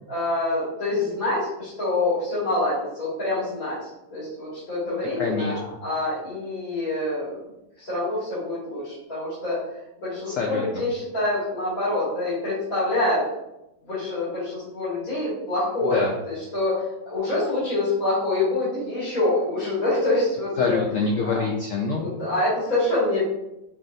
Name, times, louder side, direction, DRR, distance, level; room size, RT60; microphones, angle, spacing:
voice 1, 0.1-7.4 7.8-9.6 10.0-13.2 13.8-20.8 21.2-21.4 22.0-23.2, left 2 dB, 50° left, -11 dB, 2.2 m, -26 dB
voice 2, 4.9-5.6 10.3-10.6 15.9-16.1 20.6-22.1, left 4 dB, 80° left, 1 dB, 0.7 m, -26 dB
7.1 x 2.6 x 2.6 m, 0.91 s
omnidirectional pair, 1.9 m